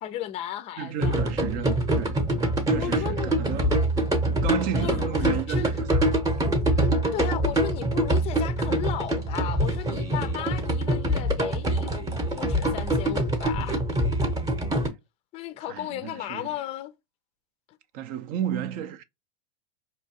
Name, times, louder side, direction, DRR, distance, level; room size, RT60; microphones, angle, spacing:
voice 1, 0.0-1.2 2.8-3.5 4.7-5.8 6.7-12.1 12.4-13.8 15.3-16.9, left 12 dB, 30° left, 0.5 m, -35 dB
voice 2, 0.8-2.2 2.7-3.7 4.4-6.0 15.7-16.5 17.9-19.0, right 9 dB, 45° right, 0.5 m, -32 dB
sound 1, 1.0-14.9, right 1 dB, 15° right, 0.9 m, -25 dB
4.4 x 2.7 x 2.8 m
hypercardioid pair, 115°, 21 cm